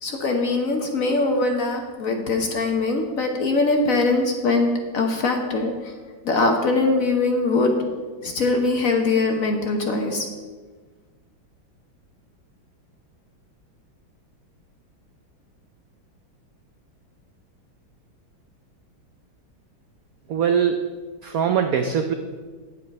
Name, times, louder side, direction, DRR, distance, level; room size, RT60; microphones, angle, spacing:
voice 1, 0.0-5.9 6.2-7.8 8.2-10.3, left 3 dB, 50° left, 3 dB, 1.1 m, -22 dB
voice 2, 20.3-20.8 21.2-22.1, right 7 dB, 85° right, 7 dB, 0.7 m, -21 dB
9.7 x 7.7 x 5.3 m, 1.4 s
omnidirectional pair, 2.2 m